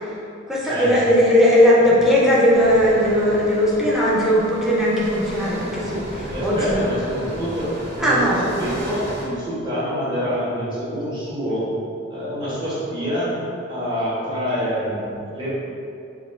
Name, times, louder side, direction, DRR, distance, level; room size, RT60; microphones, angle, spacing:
voice 1, 0.5-6.8 8.0-8.4, equal, ahead, -6 dB, 0.7 m, -18 dB
sound 1, 2.5-9.2, equal, 55° right, 1.4 m, -34 dB
voice 2, 6.3-7.7 7.9-11.7 12.1-13.4 13.7-15.5, equal, 25° right, -10 dB, 1.3 m, -26 dB
4.6 x 2.4 x 3.8 m, 2.6 s
head